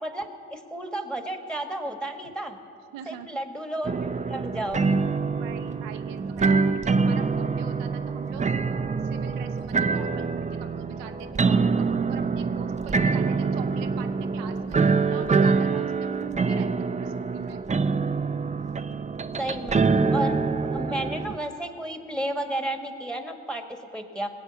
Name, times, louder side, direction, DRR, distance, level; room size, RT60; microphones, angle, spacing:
voice 1, 0.0-2.6 3.1-3.9 4.3-4.8 19.4-19.8 20.1-23.6 23.9-24.3, right 1 dB, 5° left, 6 dB, 1.7 m, -32 dB
voice 2, 2.9-3.3 5.3-8.5 9.0-14.8 15.0-17.6, right 9 dB, 75° right, 6 dB, 0.8 m, -43 dB
sound 1, 3.8-21.4, right 4 dB, 20° right, 0.6 m, -25 dB
19.5 x 8.1 x 7.0 m, 2.6 s
hypercardioid pair, 50°, 33 cm